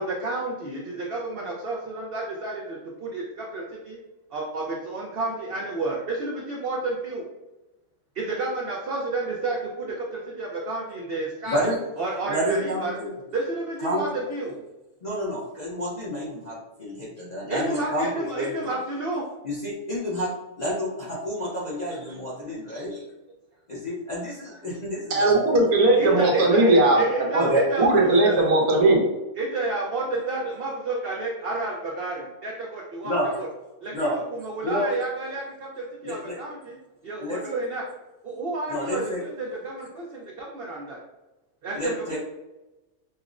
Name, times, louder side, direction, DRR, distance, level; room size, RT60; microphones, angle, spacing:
voice 1, 0.0-4.0 4.3-7.3 8.2-11.7 12.0-13.0 13.3-14.6 17.5-19.2 26.0-28.5 29.4-33.5 33.8-36.8 37.0-37.8 38.2-41.0 41.6-42.2, right 2 dB, 65° right, -2 dB, 0.5 m, -30 dB
voice 2, 11.5-11.8 12.3-13.2 13.8-14.0 15.0-18.7 19.4-20.3 20.6-23.0 23.7-25.4 27.4-27.6 33.0-33.3 33.9-34.2 34.6-34.9 36.0-36.4 37.2-37.4 38.7-39.2 41.7-42.2, equal, 45° left, -7 dB, 0.6 m, -29 dB
voice 3, 25.1-27.0 27.3-27.5 27.8-29.0, right 2 dB, 85° right, -1 dB, 1.3 m, -18 dB
5.3 x 2.0 x 2.4 m, 1.0 s
omnidirectional pair, 1.6 m